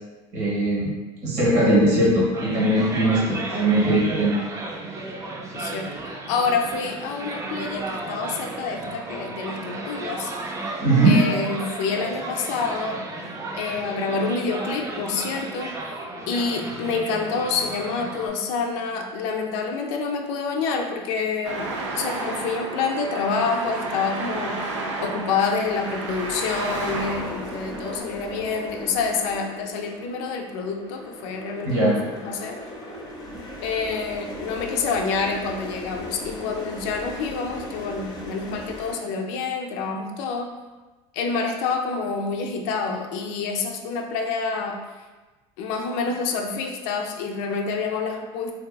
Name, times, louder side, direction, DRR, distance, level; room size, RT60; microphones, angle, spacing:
voice 1, 0.3-0.9 1.2-4.3 10.8-11.2 31.6-32.0, right 1 dB, 65° right, -5 dB, 1.2 m, -20 dB
sound 1, 2.3-18.3, right 2 dB, 20° right, 0.4 m, -34 dB
voice 2, 5.5-10.3 11.0-13.0 13.5-15.7 16.3-24.6 25.0-32.6 33.6-40.5 41.1-44.8 45.6-48.5, left 4 dB, 70° left, 3 dB, 0.4 m, -27 dB
Traffic noise roadway noise, 21.4-28.0, right 3 dB, 90° right, 0.4 m, -32 dB
sound 2, 24.9-38.9, left 1 dB, 25° left, 0.6 m, -39 dB
2.6 x 2.2 x 2.3 m, 1.2 s
supercardioid pair, 90°, 15 cm